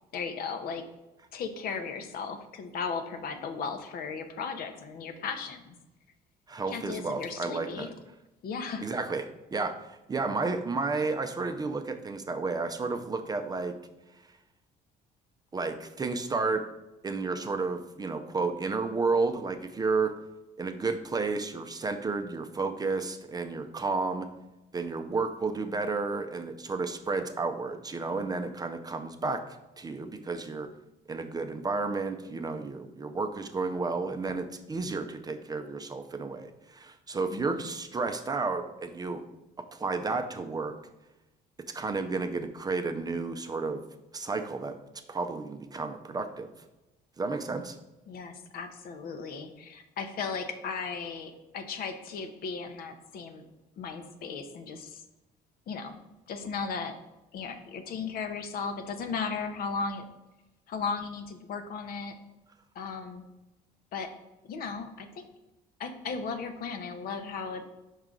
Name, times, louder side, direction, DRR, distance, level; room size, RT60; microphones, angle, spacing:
voice 1, 0.1-0.8 1.3-5.7 6.7-7.9 8.4-8.9 37.3-37.7 48.1-53.4 53.8-55.0 55.7-56.0 56.3-57.0 57.3-60.0 60.7-62.1 62.7-63.2 63.9-64.1 64.5-65.3 65.8-67.7, left 5 dB, 60° left, 7 dB, 0.8 m, -36 dB
voice 2, 6.5-7.9 8.8-9.2 9.5-13.7 15.5-16.6 17.0-20.1 20.6-24.3 24.7-29.4 29.8-30.7 31.1-39.2 39.7-40.7 41.7-43.8 44.1-44.7 45.1-46.5 47.2-47.8, right 3 dB, 25° right, 7 dB, 0.5 m, -32 dB
5.5 x 4.7 x 3.7 m, 1.0 s
cardioid pair, 110°, 17 cm